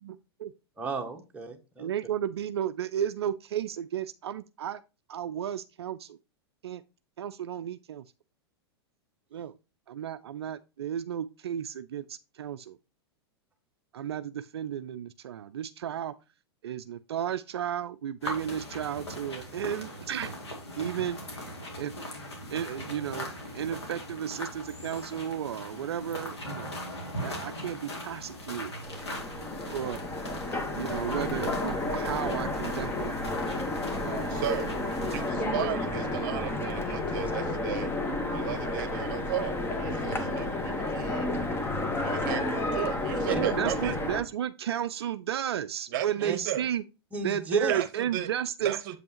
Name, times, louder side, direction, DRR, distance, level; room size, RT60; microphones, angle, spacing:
voice 1, 0.0-0.5 1.8-4.8 5.1-6.2 6.6-6.8 7.2-8.0 9.3-9.5 9.9-12.8 13.9-16.1 16.6-20.3 20.8-21.2 21.7-21.9 22.5-26.7 27.2-28.7 28.9-29.0 29.7-30.0 30.7-33.1 34.0-34.4 35.6-35.7 36.2-36.4 43.3-46.8 47.2-48.8, right 10 dB, 75° right, 0.4 m, -33 dB
voice 2, 0.8-1.9 35.1-35.7 43.3-43.5 46.2-46.4 47.1-47.7, right 3 dB, 10° right, 1.4 m, -34 dB
sound 1, 18.2-35.3, left 1 dB, 85° left, 2.4 m, -40 dB
Train, 28.8-44.2, left 2 dB, 15° left, 1.2 m, -31 dB
voice 3, 34.3-34.7 35.1-37.9 38.3-41.3 42.0-44.0 45.9-46.6 47.7-48.3 48.6-49.0, right 12 dB, 50° right, 0.9 m, -35 dB
7.8 x 5.2 x 2.9 m
hypercardioid pair, 100°, 14 cm